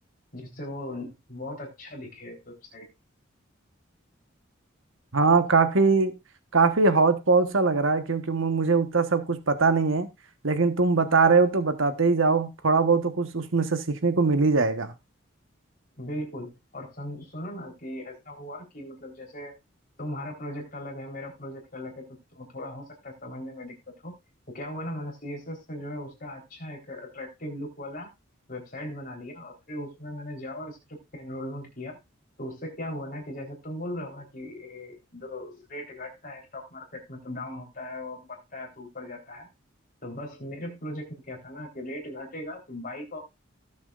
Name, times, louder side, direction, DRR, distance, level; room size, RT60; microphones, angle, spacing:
voice 1, 0.3-2.9 16.0-19.6 20.0-22.0 22.3-23.7 24.0-24.1 24.5-28.1 28.5-30.8 31.1-32.0 32.4-39.5 40.0-43.2, left 1 dB, 45° left, 3.9 m, -38 dB
voice 2, 5.1-6.1 6.5-10.1 10.4-14.9, right 4 dB, 80° right, 1.2 m, -22 dB
17.5 x 7.2 x 2.5 m
head